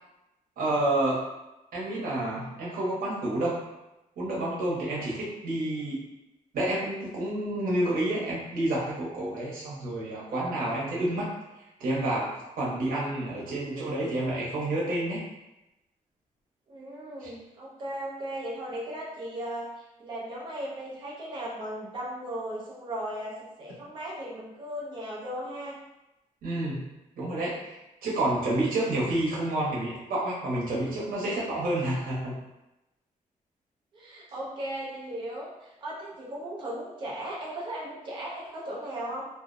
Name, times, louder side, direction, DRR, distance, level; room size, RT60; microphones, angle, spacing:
voice 1, 0.6-1.2 1.7-3.6 4.2-6.1 6.5-11.3 11.8-15.2 17.2-17.3 26.4-26.8 27.2-32.3, right 1 dB, 85° right, -5 dB, 0.8 m, -29 dB
voice 2, 13.7-14.2 16.7-19.7 20.0-25.8 33.9-39.3, right 1 dB, 35° right, -5 dB, 0.4 m, -37 dB
2.5 x 2.0 x 2.5 m, 0.96 s
wide cardioid pair, 170°, 14 cm